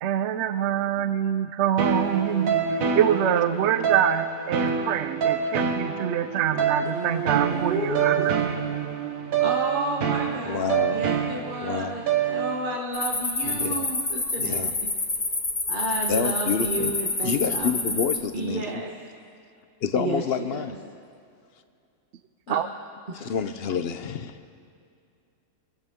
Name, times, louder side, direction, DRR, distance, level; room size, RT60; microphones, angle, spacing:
voice 1, 0.0-8.5 22.5-22.7, right 10 dB, 65° right, 10 dB, 0.8 m, -25 dB
sound 1, 1.8-12.7, right 7 dB, 80° right, 1.5 m, -27 dB
voice 2, 7.5-8.2 9.4-14.9 15.7-18.1 18.3-18.9 19.9-20.8 22.5-22.6 23.1-23.3, right 2 dB, 40° right, -1 dB, 1.3 m, -31 dB
voice 3, 10.4-11.1 11.6-11.9 13.4-13.9 14.4-14.7 16.1-16.9 17.2-18.6 19.8-20.7 23.1-24.3, left 7 dB, 55° left, 10 dB, 0.9 m, -28 dB
sound 2, 12.9-18.2, left 2 dB, 30° left, 1.4 m, -28 dB
26.5 x 15.0 x 3.7 m, 2.4 s
omnidirectional pair, 1.4 m